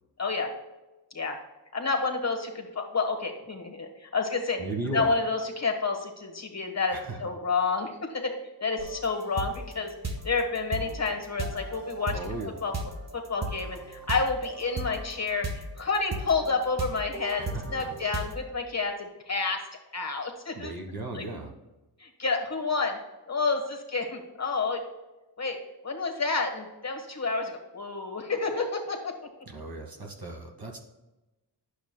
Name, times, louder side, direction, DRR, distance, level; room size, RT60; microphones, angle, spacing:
voice 1, 0.2-0.5 1.1-1.4 1.7-4.6 4.9-8.3 8.6-9.9 10.2-12.2 12.6-12.7 13.1-17.4 17.7-19.6 19.9-20.7 21.1-21.2 22.0-23.0 23.3-24.8 25.4-25.6 25.8-29.1, left 4 dB, 40° left, 3 dB, 1.4 m, -29 dB
voice 2, 4.6-5.2 6.9-7.2 12.1-12.5 17.4-17.9 20.5-21.5 29.5-30.8, right 2 dB, 55° right, 1 dB, 1.6 m, -36 dB
sound 1, 8.8-18.4, right 2 dB, 40° right, 1.1 m, -36 dB
9.4 x 6.9 x 2.2 m, 1.1 s
cardioid pair, 60°, 43 cm